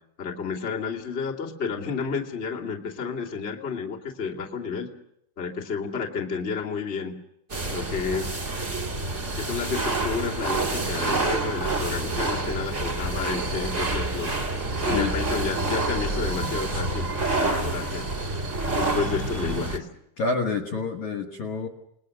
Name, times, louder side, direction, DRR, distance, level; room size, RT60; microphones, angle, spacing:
voice 1, 0.2-4.9 5.4-7.1 7.7-8.3 9.4-14.4 14.8-18.1 18.7-19.9, left 5 dB, 25° left, -1 dB, 1.3 m, -31 dB
sound 1, 7.5-19.8, right 2 dB, 60° right, 0.7 m, -28 dB
voice 2, 14.8-15.1 20.2-21.7, left 4 dB, 65° left, 3 dB, 1.9 m, -28 dB
29.0 x 20.0 x 6.5 m, 0.78 s
omnidirectional pair, 5.4 m